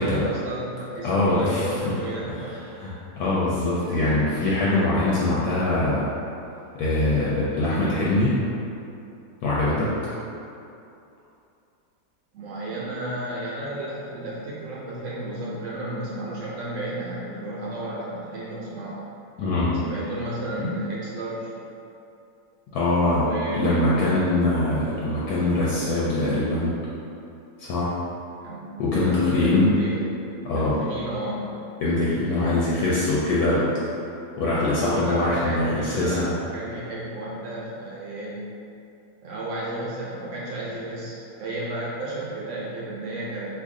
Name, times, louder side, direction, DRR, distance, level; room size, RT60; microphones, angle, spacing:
voice 1, 0.0-2.6 12.3-19.0 19.8-21.5 23.2-24.3 28.4-30.1 30.5-31.6 34.6-38.5 39.2-43.5, right 1 dB, 65° right, -6 dB, 0.8 m, -32 dB
voice 2, 1.0-1.7 2.8-6.1 6.7-8.4 9.4-9.9 19.4-19.8 20.6-20.7 22.7-26.7 27.6-28.0 28.8-29.7 30.4-30.8 31.8-33.8 34.4-36.3, left 2 dB, 75° left, -7 dB, 1.0 m, -23 dB
2.7 x 2.5 x 3.6 m, 2.7 s
omnidirectional pair, 1.7 m